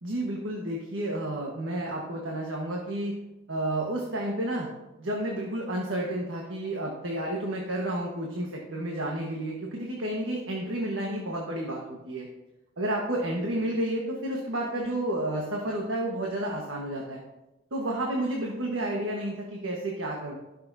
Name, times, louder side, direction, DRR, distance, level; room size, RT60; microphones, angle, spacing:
voice 1, 0.0-3.1 3.5-4.7 5.0-12.3 12.8-17.2 17.7-20.4, right 1 dB, 85° right, -1 dB, 1.4 m, -31 dB
16.0 x 6.6 x 2.7 m, 1.0 s
head